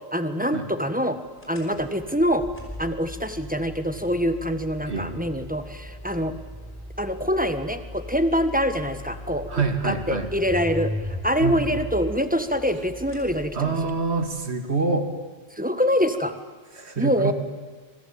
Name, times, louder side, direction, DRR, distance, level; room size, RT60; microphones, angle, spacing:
voice 1, 0.1-1.2 1.5-2.4 2.8-6.3 7.0-9.5 9.8-10.9 11.2-13.7 15.6-16.3 17.0-17.3, equal, 10° right, 9 dB, 1.5 m, -25 dB
sound 1, 1.4-14.2, left 1 dB, 10° left, 5.3 m, -38 dB
voice 2, 4.9-5.2 9.5-10.3 11.4-11.8 13.5-15.1 16.8-17.3, right 4 dB, 80° right, 7 dB, 2.5 m, -26 dB
26.5 x 23.0 x 8.9 m, 1.4 s
omnidirectional pair, 1.1 m